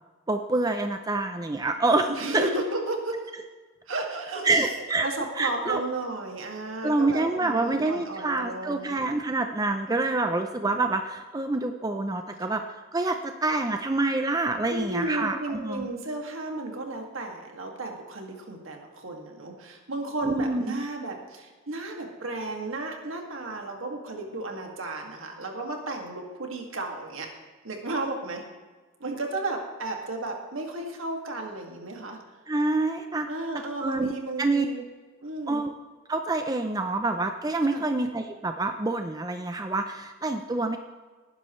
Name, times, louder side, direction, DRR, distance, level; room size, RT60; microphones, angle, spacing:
voice 1, 0.3-2.5 4.4-5.1 5.4-5.8 6.8-12.6 12.9-15.9 20.2-20.8 32.5-33.3 33.8-34.1 34.4-34.7 35.5-35.7 36.1-40.8, right 2 dB, 20° right, 6 dB, 0.5 m, -26 dB
voice 2, 2.1-3.1 3.9-9.0 14.7-27.3 27.6-28.4 29.0-32.2 33.3-34.8 35.2-35.6 37.7-37.9, right 2 dB, 70° right, 2 dB, 2.1 m, -34 dB
18.5 x 10.0 x 3.2 m, 1.4 s
head